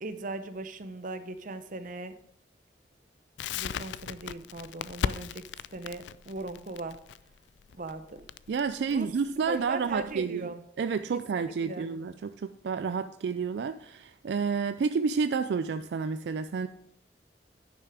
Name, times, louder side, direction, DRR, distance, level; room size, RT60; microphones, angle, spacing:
voice 1, 0.0-2.1 3.5-5.4 5.7-7.0 7.7-8.2 8.9-9.1 9.5-10.6 11.1-11.9, right 2 dB, 50° right, 10 dB, 0.7 m, -38 dB
Crackle, 3.4-10.2, left 7 dB, 85° left, 0.3 m, -37 dB
voice 2, 8.5-10.5 10.8-16.7, right 5 dB, 70° right, 11 dB, 0.4 m, -30 dB
9.9 x 6.0 x 4.8 m, 0.71 s
head